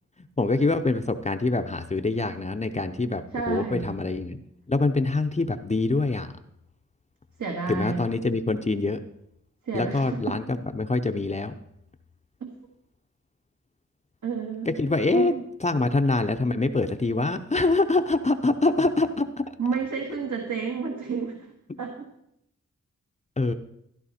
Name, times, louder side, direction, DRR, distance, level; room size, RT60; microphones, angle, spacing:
voice 1, 0.4-4.4 4.7-6.3 7.7-9.0 9.7-11.5 14.7-15.3 15.6-19.4 21.7-21.8 23.4-23.5, left 3 dB, 20° left, 7 dB, 0.5 m, -25 dB
voice 2, 3.3-4.0 7.4-8.1 9.6-10.2 12.4-12.5 14.2-14.7 15.1-15.4 19.6-22.1, right 5 dB, 70° right, 1 dB, 1.7 m, -31 dB
14.0 x 11.5 x 4.2 m, 0.78 s
wide cardioid pair, 120°, 31 cm